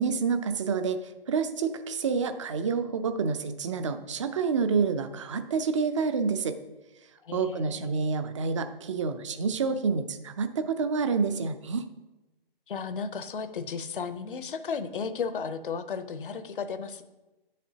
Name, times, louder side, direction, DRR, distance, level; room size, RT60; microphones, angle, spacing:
voice 1, 0.0-6.6 7.3-11.9, right 5 dB, 30° right, 10 dB, 0.6 m, -28 dB
voice 2, 7.2-7.9 12.7-17.0, left 5 dB, 65° left, 10 dB, 0.7 m, -34 dB
11.0 x 7.4 x 2.8 m, 1.0 s
figure-of-eight pair, 145°, 29 cm